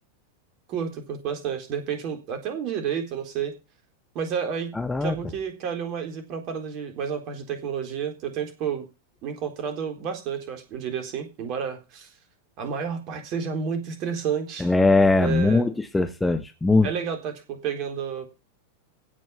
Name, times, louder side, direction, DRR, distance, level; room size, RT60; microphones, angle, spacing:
voice 1, 0.7-3.5 4.1-4.7 5.0-8.9 9.2-12.1 12.6-14.7 15.2-15.6 16.8-18.3, right 7 dB, 40° right, 3.9 m, -30 dB
voice 2, 4.7-5.2 14.6-16.9, left 3 dB, 10° left, 1.3 m, -20 dB
16.5 x 6.2 x 7.2 m
figure-of-eight pair, 90°, 0 cm